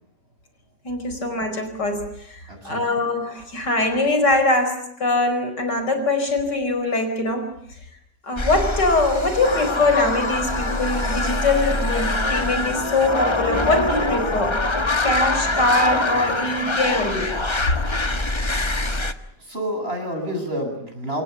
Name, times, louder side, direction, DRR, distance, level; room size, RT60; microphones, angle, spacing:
voice 1, 0.8-7.5 8.2-14.6 15.0-17.4, left 2 dB, 75° left, 7 dB, 5.5 m, -22 dB
voice 2, 2.5-2.9 19.4-21.2, equal, 35° right, 4 dB, 8.0 m, -29 dB
sound 1, 8.4-19.1, left 2 dB, 20° left, 1.3 m, -24 dB
27.5 x 26.5 x 7.0 m, 0.75 s
omnidirectional pair, 1.8 m